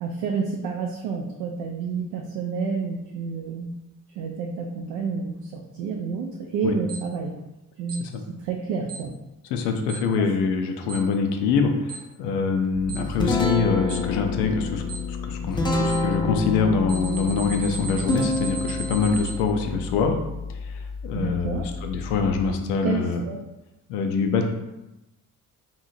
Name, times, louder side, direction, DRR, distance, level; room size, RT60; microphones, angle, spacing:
voice 1, 0.0-3.7 4.2-7.3 7.8-8.0 8.4-9.1 10.2-10.3 21.1-21.6 22.8-23.4, right 5 dB, 55° right, 1 dB, 0.5 m, -29 dB
Alarm, 6.9-7.0 7.9-8.0 8.9-9.0 9.9-10.0 10.9-11.0 11.9-12.0 12.9-13.0 13.9-14.0 14.9-15.0 15.9-16.0 16.9-19.3, right 7 dB, 30° right, 1.0 m, -36 dB
voice 2, 9.5-20.2 20.5-23.2 23.9-24.5, left 5 dB, 60° left, 5 dB, 0.5 m, -25 dB
Guitar, 12.8-22.5, left 3 dB, 10° left, 0.4 m, -29 dB
2.8 x 2.7 x 2.6 m, 0.97 s
figure-of-eight pair, 40°, 47 cm